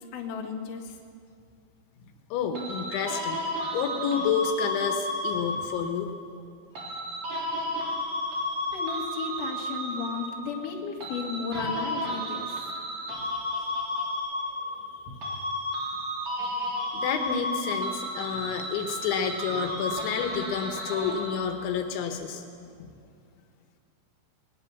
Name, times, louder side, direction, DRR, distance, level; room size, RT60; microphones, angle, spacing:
voice 1, 0.1-1.0 5.3-5.6 8.7-12.7 15.1-15.3 22.6-22.7, left 6 dB, 50° left, 0 dB, 3.2 m, -35 dB
voice 2, 2.3-6.1 16.9-22.4 22.8-22.9, left 6 dB, 80° left, 5 dB, 3.6 m, -29 dB
sound 1, 2.5-5.9 6.7-10.5 11.0-14.9 15.2-21.5, left 1 dB, 35° right, 4.5 m, -32 dB
20.0 x 20.0 x 7.1 m, 2.2 s
omnidirectional pair, 5.4 m